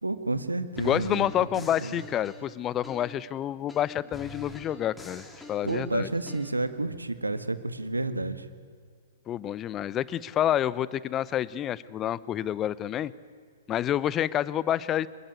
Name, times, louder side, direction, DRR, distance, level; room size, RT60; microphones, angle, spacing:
voice 1, 0.0-1.3 1.6-2.0 5.6-8.4, right 2 dB, 85° right, 11 dB, 1.8 m, -30 dB
voice 2, 0.8-5.2 5.5-6.1 9.3-13.1 13.7-15.1, left 11 dB, 25° left, 20 dB, 0.9 m, -28 dB
sound 1, 0.8-3.3 3.7-6.5, left 3 dB, 5° left, 3.6 m, -45 dB
25.0 x 22.5 x 9.6 m, 2.1 s
figure-of-eight pair, 110°, 0 cm